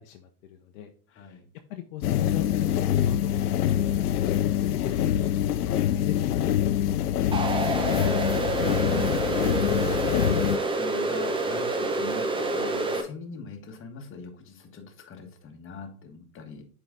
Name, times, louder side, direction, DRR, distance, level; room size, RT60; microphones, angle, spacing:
voice 1, 0.0-1.4 1.7-6.7, left 11 dB, 60° left, 5 dB, 0.9 m, -38 dB
voice 2, 1.1-1.4 6.9-7.8 8.2-16.6, left 4 dB, 30° left, 3 dB, 1.5 m, -41 dB
sound 1, 2.0-10.6, left 10 dB, 85° left, 0.6 m, -25 dB
sound 2, 7.3-13.0, right 2 dB, 10° right, 0.8 m, -28 dB
7.4 x 4.0 x 3.7 m, 0.42 s
hypercardioid pair, 100°, 45 cm